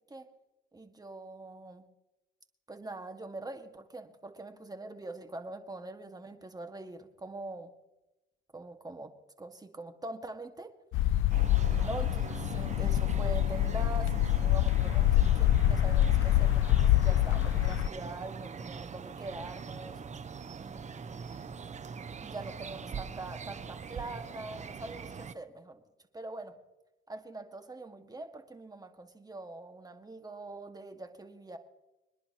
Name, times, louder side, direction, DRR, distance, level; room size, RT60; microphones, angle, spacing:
voice 1, 0.7-1.9 2.7-7.7 8.5-9.1 9.4-10.7 11.4-20.0 20.3-21.4 22.2-25.8 26.1-26.6 27.1-31.6, right 2 dB, 20° right, 6 dB, 1.9 m, -43 dB
sound 1, 10.9-17.9, left 13 dB, 85° left, 0.4 m, -26 dB
sound 2, 11.3-25.3, right 5 dB, 35° right, 0.9 m, -42 dB
26.5 x 10.5 x 3.0 m, 0.99 s
cardioid pair, 90°, 20 cm